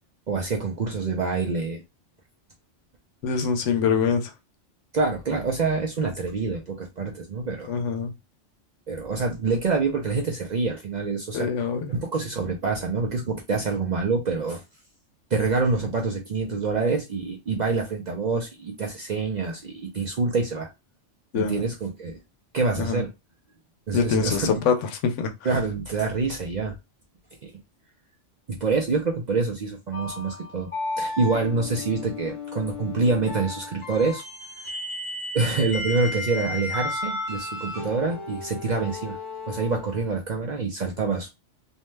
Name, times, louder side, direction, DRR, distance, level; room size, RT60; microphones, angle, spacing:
voice 1, 0.3-1.8 4.9-7.7 8.9-11.5 11.9-14.6 15.3-20.7 21.3-22.2 22.5-23.1 23.9-24.5 25.4-26.8 27.4-27.5 28.5-30.7 31.0-34.2 35.3-39.2 39.5-41.3, right 4 dB, 55° right, 0.5 m, -26 dB
voice 2, 3.2-4.3 7.7-8.1 11.3-11.9 21.3-21.7 22.8-23.0 23.9-25.3, left 6 dB, 85° left, 1.0 m, -24 dB
sound 1, 29.9-40.1, left 2 dB, 30° left, 0.9 m, -34 dB
2.7 x 2.2 x 3.1 m
omnidirectional pair, 1.2 m